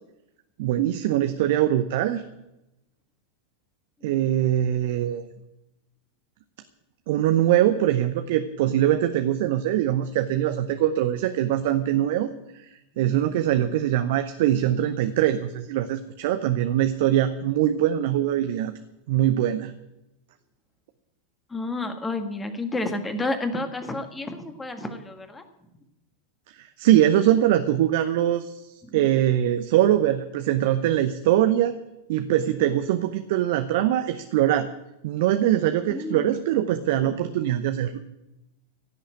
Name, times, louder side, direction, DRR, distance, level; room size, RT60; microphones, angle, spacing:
voice 1, 0.6-2.2 4.0-5.3 7.1-18.7 19.1-19.7 26.5-31.8 32.1-34.7 35.0-38.0, right 12 dB, 50° right, 8 dB, 0.8 m, -22 dB
voice 2, 21.5-25.4 28.9-29.0 35.9-36.3 37.0-37.1, left 2 dB, 10° left, 7 dB, 1.7 m, -30 dB
16.0 x 6.7 x 9.1 m, 0.92 s
figure-of-eight pair, 90°, 0 cm